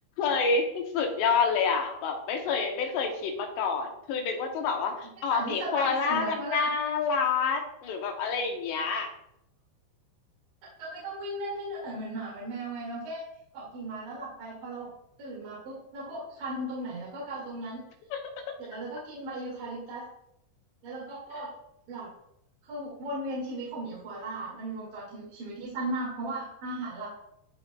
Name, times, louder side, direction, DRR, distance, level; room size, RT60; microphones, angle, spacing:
voice 1, 0.2-9.1 18.1-18.2, left 5 dB, 75° left, 3 dB, 2.9 m, -28 dB
voice 2, 5.3-6.7 10.8-13.2 13.5-14.9 15.2-17.8 18.6-20.0 20.8-21.5 21.9-22.1 22.6-27.1, right 1 dB, 55° right, -7 dB, 3.3 m, -36 dB
14.5 x 5.0 x 2.3 m, 0.79 s
omnidirectional pair, 5.3 m